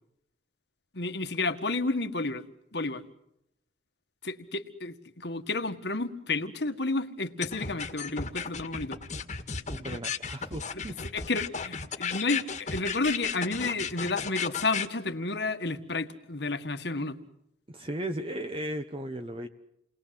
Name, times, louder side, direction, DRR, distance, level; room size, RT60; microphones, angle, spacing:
voice 1, 0.9-2.4 2.7-3.0 4.2-9.0 9.9-10.0 10.7-10.8 11.1-17.2, left 3 dB, 65° left, 8 dB, 1.9 m, -31 dB
sound 1, 7.4-14.9, left 6 dB, 45° left, 1.8 m, -34 dB
voice 2, 9.7-10.9 17.7-19.5, right 1 dB, 30° right, 7 dB, 1.2 m, -36 dB
29.5 x 21.5 x 7.8 m, 0.80 s
head